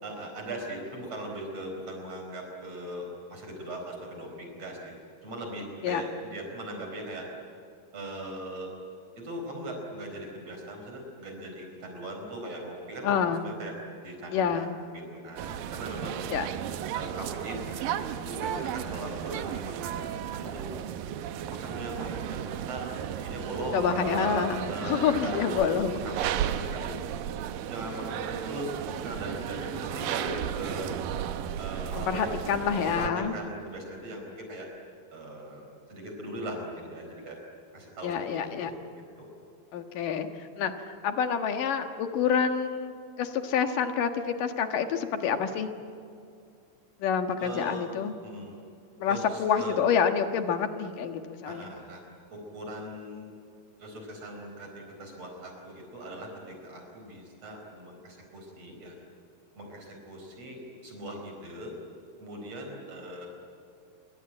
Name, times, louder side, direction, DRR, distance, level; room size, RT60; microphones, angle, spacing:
voice 1, 0.0-5.0 5.2-7.3 7.9-8.7 9.2-13.2 13.4-13.7 14.0-16.2 16.9-20.7 21.5-25.7 26.0-27.0 27.7-30.9 31.6-32.4 32.8-34.7 35.1-37.4 37.7-38.7 39.2-39.3 47.4-47.9 48.2-48.5 49.1-49.8 51.5-52.0 52.3-53.3 53.8-58.9 59.6-61.7 62.2-63.3, right 1 dB, 40° right, 2 dB, 5.5 m, -39 dB
voice 2, 13.0-13.5 14.3-14.7 16.3-16.5 23.7-26.0 32.0-33.4 38.0-38.7 39.7-40.3 40.6-45.7 47.0-48.1 49.0-51.7, left 7 dB, 65° left, 7 dB, 2.9 m, -28 dB
sound 1, 15.4-33.1, right 10 dB, 70° right, 2.4 m, -34 dB
27.0 x 24.5 x 8.9 m, 2.4 s
omnidirectional pair, 4.6 m